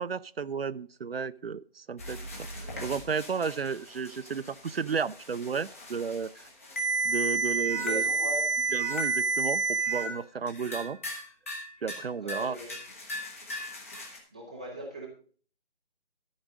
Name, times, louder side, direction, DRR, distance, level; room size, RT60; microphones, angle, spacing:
voice 1, 0.0-2.2 2.8-6.3 7.0-8.0 8.7-11.0 11.8-12.6, right 5 dB, 70° right, 16 dB, 0.6 m, -33 dB
sound 1, 2.0-10.1 10.5-11.2 11.5-12.0 12.3-14.2, right 4 dB, 15° left, 1.1 m, -32 dB
voice 2, 7.6-8.5 12.2-12.7 14.3-15.1, right 1 dB, 5° right, -3 dB, 0.7 m, -39 dB
12.5 x 5.3 x 6.1 m, 0.43 s
figure-of-eight pair, 165°, 31 cm